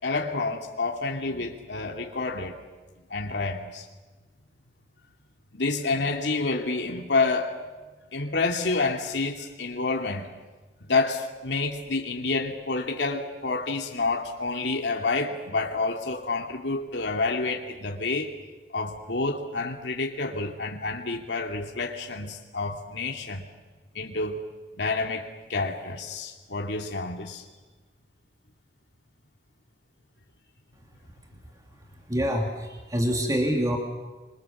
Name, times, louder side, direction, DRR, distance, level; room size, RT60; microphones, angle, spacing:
voice 1, 0.0-2.6 3.1-3.8 5.5-7.6 8.1-10.3 10.9-18.3 18.7-23.4 23.9-24.4 24.8-27.4, left 3 dB, 80° left, 1 dB, 2.7 m, -28 dB
voice 2, 32.1-33.8, equal, 20° right, 1 dB, 3.0 m, -26 dB
26.5 x 26.5 x 7.3 m, 1.2 s
head